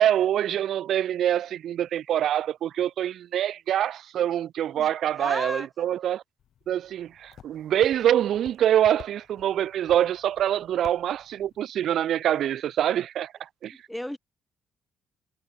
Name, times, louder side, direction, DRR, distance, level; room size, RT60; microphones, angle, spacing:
voice 1, 0.0-6.2 6.7-13.7, right 11 dB, 70° right, 0.5 m, -25 dB
voice 2, 5.1-5.7 13.9-14.2, equal, 5° left, 0.6 m, -33 dB
sound 1, 6.4-11.6, left 9 dB, 65° left, 4.9 m, -51 dB
cardioid pair, 90°, 0 cm